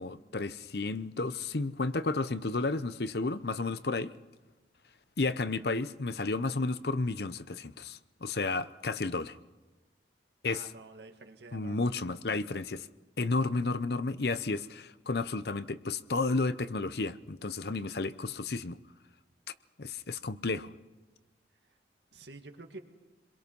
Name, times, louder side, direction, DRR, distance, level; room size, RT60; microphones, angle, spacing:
voice 1, 0.0-4.1 5.2-9.4 10.4-10.7 11.5-12.9 13.2-18.8 19.8-20.7, left 3 dB, 65° left, 0.8 m, -32 dB
voice 2, 10.4-11.9 22.1-22.8, right 2 dB, 75° right, 1.9 m, -48 dB
29.0 x 22.0 x 5.5 m
head